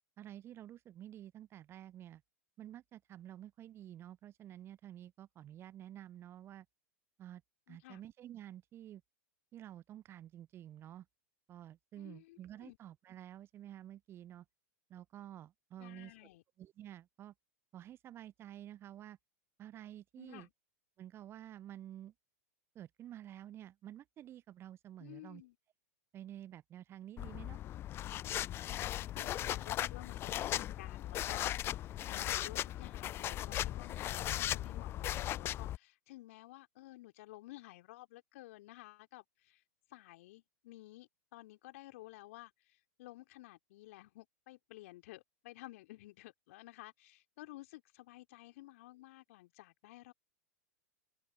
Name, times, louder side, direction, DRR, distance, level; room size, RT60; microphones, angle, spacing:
voice 1, 0.2-2.2 2.6-6.7 7.2-7.4 7.7-9.0 9.5-11.1 11.5-14.4 14.9-16.1 16.6-17.3 17.7-19.2 19.6-20.5 21.0-22.1 22.7-25.4 26.1-27.6, right 12 dB, 30° right, 0.6 m, -50 dB
voice 2, 7.7-8.0 12.0-12.8 15.8-16.4 20.2-20.5 25.0-25.6 29.1-39.6 39.9-50.1, left 18 dB, 55° left, 3.1 m, -54 dB
sound 1, 27.2-35.8, left 13 dB, 25° left, 0.3 m, -38 dB
figure-of-eight pair, 95°, 9 cm